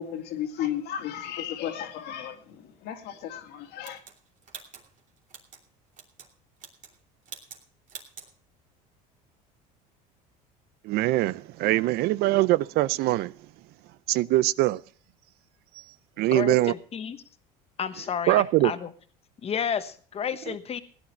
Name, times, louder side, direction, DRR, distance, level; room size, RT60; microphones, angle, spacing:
voice 1, 0.0-4.0, left 10 dB, 65° left, 2.1 m, -34 dB
sound 1, 3.8-5.6 5.9-6.3 6.6-7.0 7.2-7.6 7.9-8.3, right 6 dB, 45° right, 2.8 m, -45 dB
voice 2, 10.8-13.4 14.1-14.8 16.2-16.7 18.3-18.7 20.5-20.6, right 17 dB, 60° right, 0.5 m, -23 dB
voice 3, 16.3-17.2 17.8-18.9 19.4-20.8, left 7 dB, 35° left, 1.2 m, -31 dB
17.0 x 10.0 x 4.4 m
supercardioid pair, 95°, 18 cm